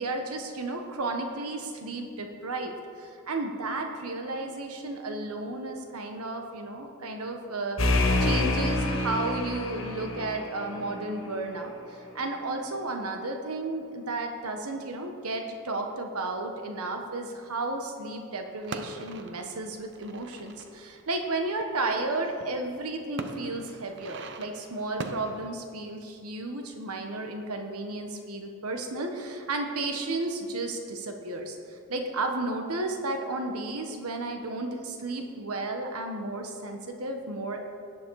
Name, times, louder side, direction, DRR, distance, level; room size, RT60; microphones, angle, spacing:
voice 1, 0.0-7.8 8.2-37.6, right 2 dB, 85° right, 4 dB, 1.3 m, -33 dB
sound 1, 7.8-11.3, left 2 dB, 60° left, 1.8 m, -27 dB
sound 2, 18.6-25.5, right 3 dB, 50° right, 0.8 m, -42 dB
17.5 x 10.5 x 4.8 m, 2.4 s
head